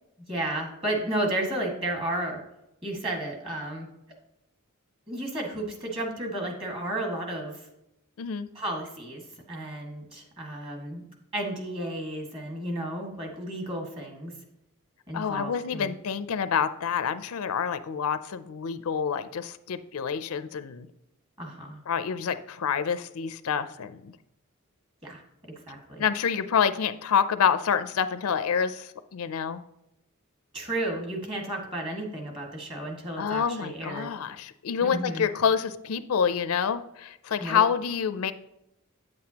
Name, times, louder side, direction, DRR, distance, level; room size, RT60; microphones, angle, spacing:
voice 1, 0.3-2.4 2.8-3.9 5.1-7.7 8.6-9.2 9.5-11.0 11.3-14.3 15.1-15.9 21.4-21.8 25.0-25.2 25.7-26.0 30.5-34.1 34.8-35.3 37.4-37.6, right 1 dB, 25° right, 1 dB, 1.8 m, -32 dB
voice 2, 15.1-20.9 21.9-24.2 26.0-29.6 33.2-38.3, left 7 dB, 75° left, 12 dB, 0.4 m, -27 dB
8.8 x 7.8 x 2.9 m, 0.85 s
head